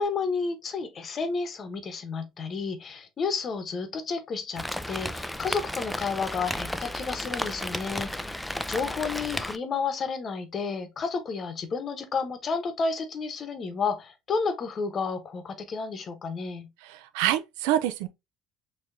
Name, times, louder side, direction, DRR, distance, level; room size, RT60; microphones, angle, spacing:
voice 1, 0.0-8.4 8.7-16.7, left 4 dB, 40° left, 0.9 m, -31 dB
Rain, 4.5-9.6, left 1 dB, 5° left, 0.3 m, -33 dB
voice 2, 16.8-18.1, right 12 dB, 85° right, 0.4 m, -26 dB
4.6 x 2.9 x 2.6 m
supercardioid pair, 95°, 0 cm